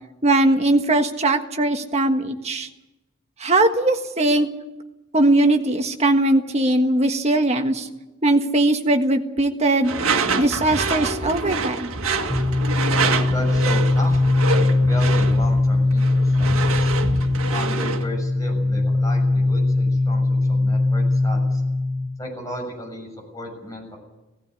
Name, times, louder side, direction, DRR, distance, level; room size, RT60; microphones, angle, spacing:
voice 1, 0.2-2.7 3.4-4.5 5.1-7.9 8.2-9.9 10.4-11.9, right 2 dB, 30° right, 5 dB, 1.5 m, -20 dB
Door / Screech, 9.8-18.1, right 4 dB, 80° right, 1.7 m, -26 dB
sound 1, 12.3-22.1, left 2 dB, 5° right, 1.0 m, -20 dB
voice 2, 13.3-14.2 14.5-16.9 17.5-21.6 22.2-24.0, equal, 15° left, 1 dB, 6.9 m, -34 dB
17.5 x 15.5 x 9.7 m, 1.0 s
head